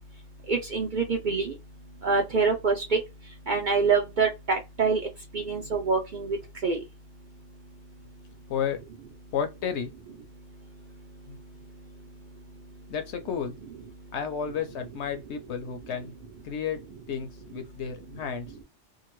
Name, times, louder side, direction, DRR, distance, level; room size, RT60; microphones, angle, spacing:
voice 1, 0.5-1.5 2.0-3.0 3.5-5.0 5.3-6.4 6.6-6.8, right 4 dB, 55° right, 0.5 m, -25 dB
voice 2, 9.3-9.9 11.3-11.4 12.9-13.6 14.1-16.1 16.4-16.8 17.1-18.5, left 7 dB, 65° left, 0.8 m, -32 dB
2.7 x 2.5 x 3.0 m
omnidirectional pair, 1.3 m